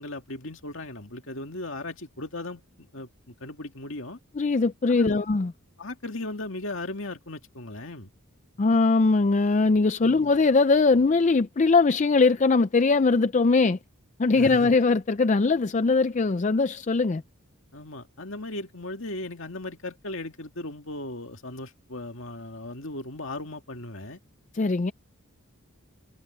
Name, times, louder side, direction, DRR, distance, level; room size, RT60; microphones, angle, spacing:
voice 1, 0.0-4.2 4.9-5.2 5.8-8.1 10.0-10.3 14.3-14.7 17.7-24.2, left 2 dB, 60° left, 2.4 m, -37 dB
voice 2, 4.4-5.5 8.6-13.8 14.2-17.2 24.5-24.9, left 3 dB, 35° left, 0.4 m, -21 dB
head